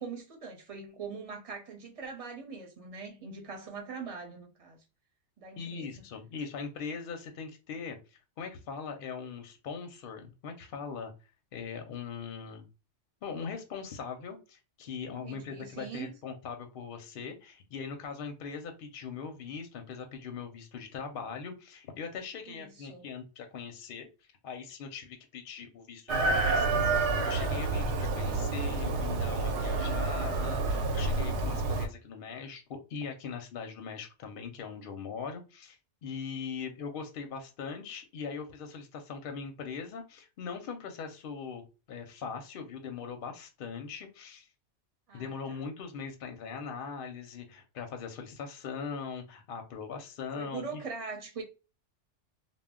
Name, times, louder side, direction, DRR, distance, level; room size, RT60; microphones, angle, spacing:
voice 1, 0.0-4.8 5.4-5.9 15.1-16.1 22.5-23.1 28.2-28.6 45.1-45.6 50.4-51.4, right 5 dB, 35° right, 0.7 m, -42 dB
voice 2, 5.6-11.1 11.5-12.7 13.2-24.1 24.4-41.6 41.9-44.5 45.1-50.8, left 6 dB, 60° left, 0.6 m, -41 dB
Chicken rooster, 26.1-31.9, right 3 dB, 75° right, 0.9 m, -29 dB
2.1 x 2.0 x 3.5 m
omnidirectional pair, 1.2 m